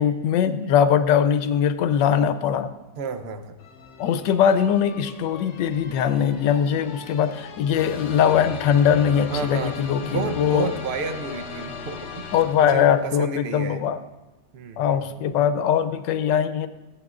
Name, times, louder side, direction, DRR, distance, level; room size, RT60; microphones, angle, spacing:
voice 1, 0.0-2.7 4.0-10.7 12.3-14.0 14.8-16.7, left 8 dB, 80° left, 11 dB, 1.3 m, -21 dB
voice 2, 3.0-3.6 9.3-9.8 10.1-12.3 12.6-13.9 14.5-15.1, right 4 dB, 65° right, 8 dB, 0.6 m, -31 dB
sound 1, 3.6-13.1, left 6 dB, 55° left, 0.8 m, -38 dB
20.5 x 8.5 x 2.4 m, 1.0 s
omnidirectional pair, 1.9 m